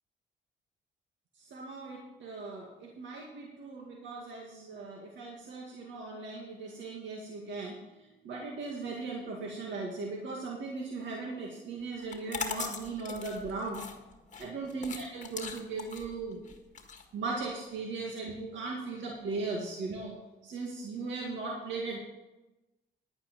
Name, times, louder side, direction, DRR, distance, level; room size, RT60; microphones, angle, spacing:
voice 1, 1.5-7.8 8.2-13.8 14.4-16.4 17.1-20.2 20.4-22.0, right 3 dB, 70° right, -1 dB, 2.1 m, -38 dB
sound 1, 12.0-17.8, left 6 dB, 40° left, 1.7 m, -41 dB
11.0 x 9.2 x 5.3 m, 1.0 s
cardioid pair, 90°, 20 cm